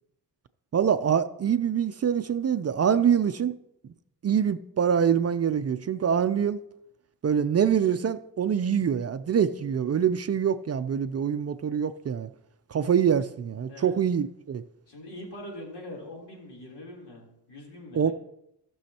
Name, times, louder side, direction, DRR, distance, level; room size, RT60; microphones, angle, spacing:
voice 1, 0.7-3.5 4.2-6.6 7.2-12.3 12.7-14.6 17.9-18.1, right 8 dB, 40° right, 11 dB, 0.4 m, -25 dB
voice 2, 9.6-10.0 13.7-14.0 14.9-18.1, left 1 dB, 75° left, -2 dB, 3.5 m, -43 dB
17.5 x 6.2 x 2.9 m, 0.81 s
cardioid pair, 105°, 41 cm